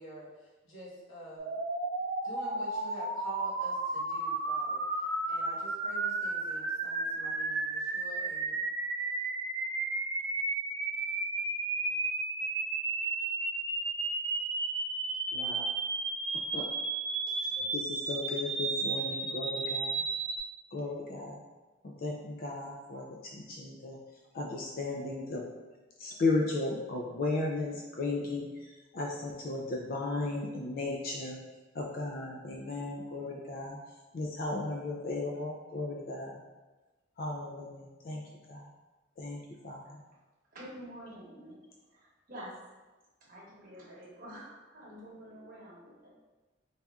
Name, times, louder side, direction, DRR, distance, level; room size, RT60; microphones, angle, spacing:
voice 1, 0.0-1.6 2.2-8.6, equal, 80° left, -7 dB, 1.2 m, -48 dB
sound 1, 1.4-20.4, right 3 dB, 65° right, 0.5 m, -33 dB
voice 2, 15.3-15.7 16.5-16.7 17.3-20.0 20.7-21.4 21.8-24.0 24.3-25.5 26.0-31.4 31.7-33.8 34.1-36.4 37.2-38.7 39.2-40.0, left 3 dB, 50° left, -1 dB, 0.4 m, -35 dB
voice 3, 40.5-41.6 41.9-42.5 43.2-46.1, equal, 45° right, -5 dB, 1.0 m, -48 dB
4.0 x 3.4 x 2.3 m, 1.2 s
head